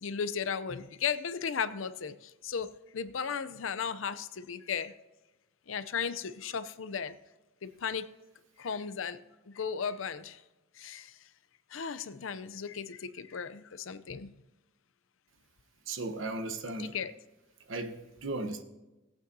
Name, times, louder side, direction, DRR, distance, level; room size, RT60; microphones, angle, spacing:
voice 1, 0.0-4.9 5.7-7.2 7.6-8.1 8.6-9.2 9.5-10.4 10.8-11.1 11.7-14.3 16.8-17.1, left 6 dB, 85° left, 0.6 m, -35 dB
voice 2, 15.9-17.0 17.7-18.6, right 2 dB, 80° right, 1.0 m, -36 dB
17.5 x 8.8 x 2.7 m
head